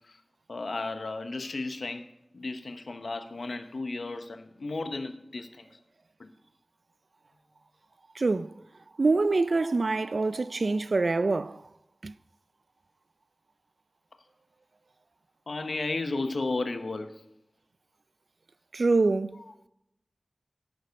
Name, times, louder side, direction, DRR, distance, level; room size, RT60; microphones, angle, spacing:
voice 1, 0.5-2.1 2.3-5.7 6.2-6.3 15.5-17.2 19.4-19.5, left 3 dB, 80° left, 1.0 m, -34 dB
voice 2, 8.2-8.5 9.0-11.6 12.0-12.1 18.7-19.4, right 3 dB, 70° right, 0.4 m, -25 dB
11.5 x 9.8 x 5.3 m
wide cardioid pair, 70°, 0 cm